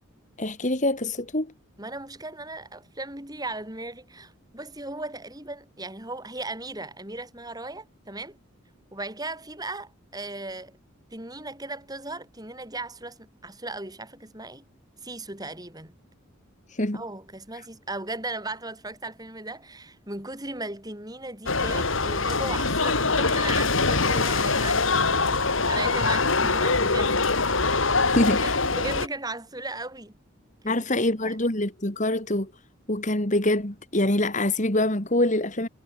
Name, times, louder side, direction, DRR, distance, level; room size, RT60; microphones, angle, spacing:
voice 1, 0.4-1.5 16.8-17.0 28.1-28.5 30.6-32.5 32.9-35.7, left 1 dB, 35° left, 2.7 m, -25 dB
voice 2, 1.8-8.4 8.9-10.8 11.1-14.7 15.0-16.0 16.9-25.4 25.7-27.4 28.0-30.2 30.6-31.4, right 2 dB, 20° right, 7.7 m, -37 dB
sound 1, 21.5-29.1, left 3 dB, 70° left, 3.6 m, -23 dB
head